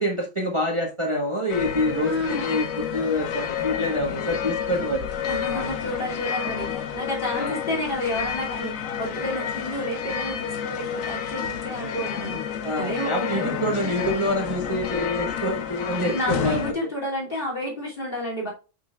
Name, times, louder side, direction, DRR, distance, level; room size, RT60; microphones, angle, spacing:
voice 1, 0.0-5.1 7.3-7.6 12.6-16.9, left 1 dB, 20° right, 0 dB, 1.2 m, -26 dB
sound 1, 1.5-16.7, left 8 dB, 70° left, 1.2 m, -30 dB
voice 2, 1.9-2.6 5.2-13.4 16.1-18.5, left 1 dB, 35° left, -3 dB, 2.8 m, -30 dB
6.9 x 5.9 x 2.4 m, 0.31 s
omnidirectional pair, 1.5 m